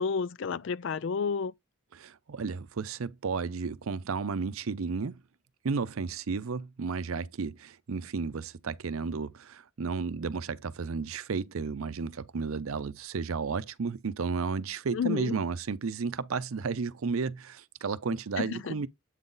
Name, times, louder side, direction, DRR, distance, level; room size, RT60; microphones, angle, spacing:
voice 1, 0.0-1.5 14.9-15.4 18.4-18.8, left 5 dB, 60° left, 0.4 m, -31 dB
voice 2, 2.0-5.2 5.6-18.9, right 5 dB, 80° right, 0.5 m, -33 dB
8.0 x 3.9 x 3.8 m
head